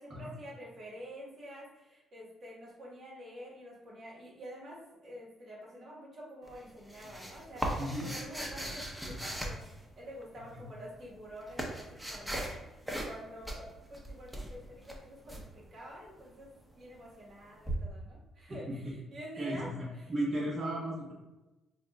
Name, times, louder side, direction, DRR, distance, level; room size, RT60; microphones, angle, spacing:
voice 1, 0.0-12.8 13.0-20.1, equal, 55° right, -4 dB, 1.4 m, -48 dB
sound 1, 6.5-10.3 11.0-12.6 12.9-13.2 13.4-15.4 17.7-17.8, right 1 dB, 5° right, 0.8 m, -38 dB
voice 2, 7.8-8.1 10.6-10.7 18.7-18.8 19.4-21.1, right 1 dB, 40° right, -5 dB, 1.3 m, -35 dB
5.7 x 2.5 x 2.3 m, 1.0 s
cardioid pair, 75°, 0 cm